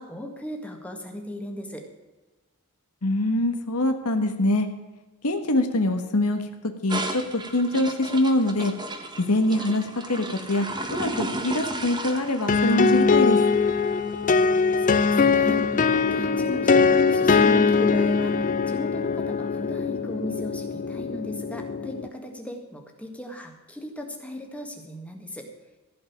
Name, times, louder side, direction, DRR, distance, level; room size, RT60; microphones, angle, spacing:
voice 1, 0.0-1.9 14.3-25.5, left 1 dB, 5° left, 3 dB, 1.8 m, -37 dB
voice 2, 3.0-4.7 5.2-6.4 6.8-8.7 9.2-13.4, left 1 dB, 90° left, 6 dB, 1.4 m, -24 dB
sound 1, 6.9-15.1, right 1 dB, 20° right, 1.3 m, -34 dB
sound 2, 12.5-22.1, left 4 dB, 35° left, 0.5 m, -22 dB
15.5 x 5.5 x 8.7 m, 1.2 s
head